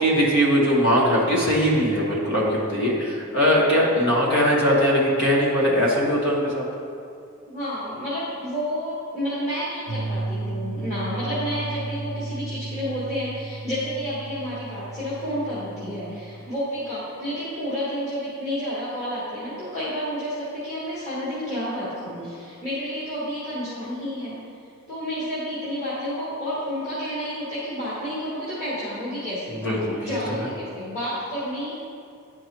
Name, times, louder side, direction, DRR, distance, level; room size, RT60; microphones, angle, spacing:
voice 1, 0.0-6.6 29.5-30.2, equal, 60° left, -4 dB, 1.5 m, -20 dB
voice 2, 7.5-24.3 24.9-29.6 30.0-31.7, equal, 30° left, -12 dB, 1.6 m, -30 dB
sound 1, 9.9-16.5, right 3 dB, 65° right, 0.6 m, -34 dB
10.5 x 4.6 x 3.0 m, 2.4 s
head